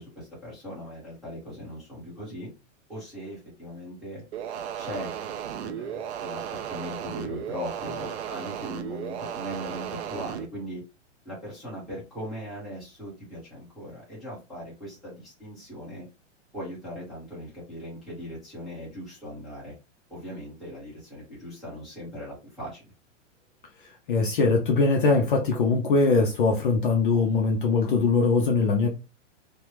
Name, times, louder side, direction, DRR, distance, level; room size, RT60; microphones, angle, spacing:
voice 1, 0.0-2.5 2.9-4.2 4.8-5.1 5.5-6.4 6.7-10.8 11.2-16.1 16.5-19.7 20.1-22.8, equal, ahead, 0.9 m, -39 dB
sound 1, 4.3-10.5, right 9 dB, 60° right, 0.4 m, -35 dB
voice 2, 24.1-28.9, left 4 dB, 45° left, 0.5 m, -22 dB
3.3 x 2.1 x 3.0 m
supercardioid pair, 175°, 38 cm